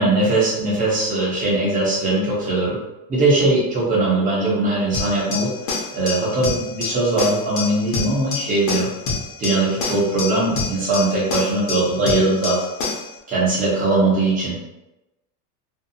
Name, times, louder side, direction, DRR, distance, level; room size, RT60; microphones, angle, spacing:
voice 1, 0.0-2.8 3.1-5.5 5.9-8.9 9.4-12.6 13.3-14.6, right 2 dB, 20° right, -6 dB, 0.7 m, -20 dB
sound 1, 4.9-13.1, left 4 dB, 65° left, 0.9 m, -28 dB
2.6 x 2.3 x 2.6 m, 0.96 s
cardioid pair, 170°, 45 cm